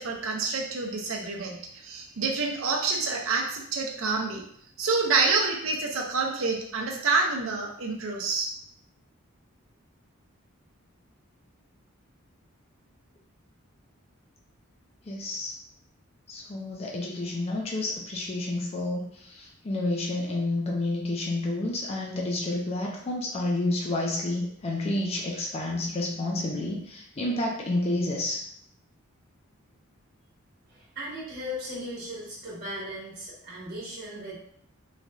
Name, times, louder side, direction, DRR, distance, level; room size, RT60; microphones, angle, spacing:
voice 1, 0.0-4.4 4.8-8.5, right 4 dB, 65° right, 1 dB, 0.6 m, -27 dB
voice 2, 15.1-15.5 16.3-28.4, left 2 dB, 30° left, -1 dB, 0.4 m, -30 dB
voice 3, 30.7-34.4, equal, 50° right, -7 dB, 1.3 m, -37 dB
3.2 x 2.6 x 2.3 m, 0.66 s
head